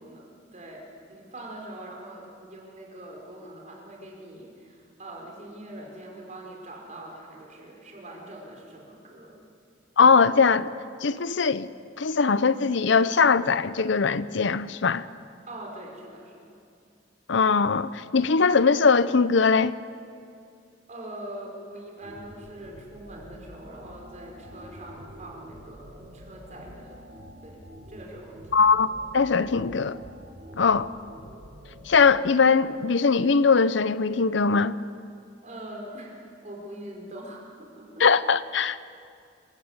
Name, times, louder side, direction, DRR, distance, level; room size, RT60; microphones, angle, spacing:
voice 1, 0.0-9.5 15.5-16.5 20.9-27.0 27.4-28.7 35.4-36.2 36.4-38.1, right 1 dB, 40° right, 5.0 m, -43 dB
voice 2, 10.0-10.7 11.0-11.7 12.0-15.0 17.3-19.7 28.5-28.9 29.1-30.0 30.6-30.9 31.9-34.8 38.0-38.8, left 5 dB, 70° left, 0.6 m, -21 dB
sound 1, 22.0-32.0, equal, 75° right, 5.4 m, -47 dB
27.0 x 16.0 x 8.1 m
head